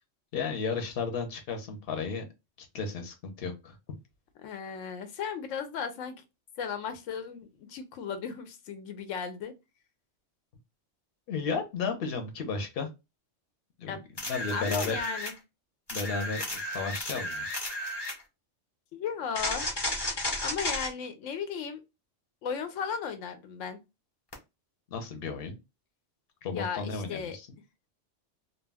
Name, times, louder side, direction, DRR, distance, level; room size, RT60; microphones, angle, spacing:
voice 1, 0.3-2.2 2.7-3.8 11.3-12.9 13.8-14.0 14.3-15.0 15.9-17.5 24.9-25.6 26.4-27.5, left 4 dB, 55° left, 0.8 m, -33 dB
voice 2, 4.4-6.1 6.6-9.5 13.8-14.0 14.5-15.3 18.9-19.7 20.4-21.8 22.4-23.8 26.5-27.4, left 7 dB, 85° left, 0.9 m, -35 dB
sound 1, 14.2-15.4 15.9-18.2 19.3-20.9 24.3-24.4, left 1 dB, 25° left, 0.6 m, -33 dB
2.3 x 2.2 x 3.3 m
omnidirectional pair, 1.3 m